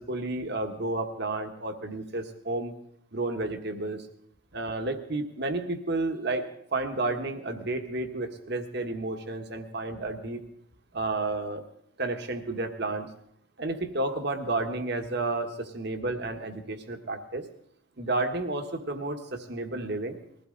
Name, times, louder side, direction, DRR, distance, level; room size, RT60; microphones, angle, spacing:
voice 1, 0.0-2.7 3.1-4.1 4.5-6.5 6.7-10.4 10.9-11.6 12.0-13.1 13.6-17.4 18.0-20.2, right 2 dB, 50° right, 6 dB, 1.4 m, -31 dB
21.0 x 15.5 x 3.9 m, 0.70 s
head